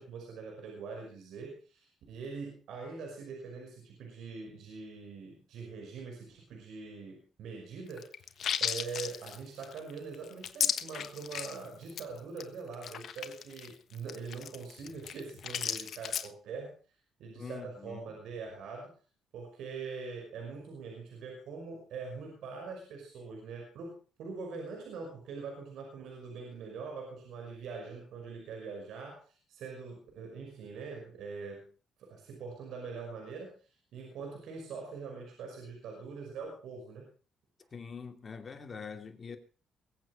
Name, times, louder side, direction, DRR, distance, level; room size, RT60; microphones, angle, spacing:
voice 1, 0.0-8.3 8.6-16.7 17.2-18.9 19.3-31.7 32.0-33.5 33.9-37.1, right 4 dB, 80° right, 5.6 m, -43 dB
sound 1, 7.9-11.6 11.9-12.1 12.4-12.5 12.7-16.3, left 8 dB, 65° left, 1.3 m, -35 dB
voice 2, 17.3-18.0 37.7-39.4, left 5 dB, 35° left, 2.6 m, -44 dB
22.0 x 8.2 x 5.3 m
cardioid pair, 90°, 0 cm